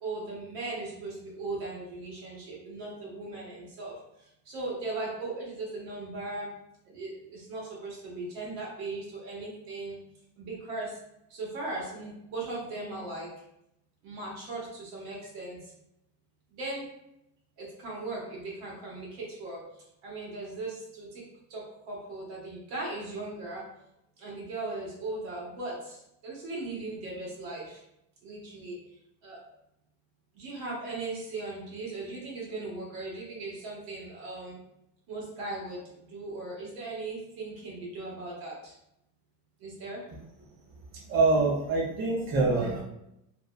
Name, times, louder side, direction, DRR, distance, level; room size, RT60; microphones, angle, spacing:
voice 1, 0.0-3.9 4.5-6.5 6.9-10.0 10.4-10.9 11.3-13.3 14.0-15.6 16.5-16.9 17.6-19.6 20.0-21.2 21.5-23.6 24.2-27.8 28.2-28.8 29.2-29.4 30.3-34.6 35.1-38.7 39.6-40.0, right 2 dB, 60° right, -4 dB, 1.3 m, -38 dB
voice 2, 41.1-42.8, right 3 dB, 35° right, -3 dB, 0.4 m, -25 dB
2.8 x 2.0 x 2.2 m, 0.81 s
cardioid pair, 145°, 40 cm